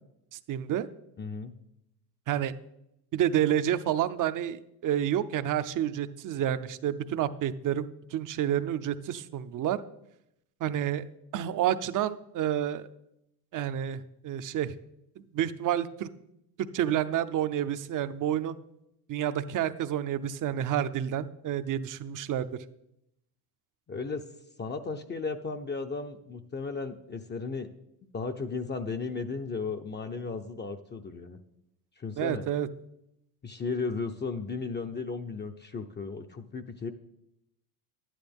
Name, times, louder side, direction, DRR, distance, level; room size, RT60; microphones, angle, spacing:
voice 1, 0.3-0.9 2.3-2.5 3.1-9.8 10.6-11.0 11.3-12.9 13.5-14.7 15.3-16.1 16.7-18.6 19.1-22.5 32.2-32.7, right 10 dB, 40° right, 13 dB, 0.7 m, -29 dB
voice 2, 1.2-1.5 23.9-24.2 24.6-27.7 28.1-31.4 32.0-32.5 33.4-36.9, left 4 dB, 20° left, 5 dB, 0.7 m, -35 dB
11.5 x 10.0 x 3.5 m, 0.82 s
supercardioid pair, 85°, 49 cm